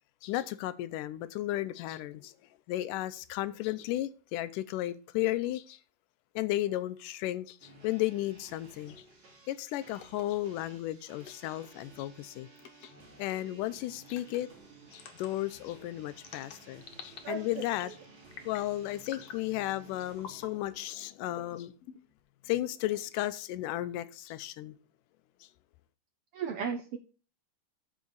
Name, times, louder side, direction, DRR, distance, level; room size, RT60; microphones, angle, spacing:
voice 1, 0.2-2.3 2.7-5.8 6.4-9.0 9.5-12.5 12.8-12.9 13.2-14.5 14.9-17.9 18.5-21.7 22.4-24.8, left 15 dB, 90° left, 2.2 m, -34 dB
sound 1, 7.6-20.6, right 2 dB, 60° right, 3.9 m, -55 dB
sound 2, 9.9-10.2 11.2-11.5 12.6-12.9 14.1-14.4 14.9-15.3 16.2-17.2 17.6-17.9 18.3-18.7 19.1-19.4 20.2-20.5 21.3-22.2, left 8 dB, 65° left, 1.9 m, -47 dB
voice 2, 17.2-17.9 26.3-27.0, right 6 dB, 80° right, 1.4 m, -36 dB
13.5 x 4.8 x 3.9 m
omnidirectional pair, 3.6 m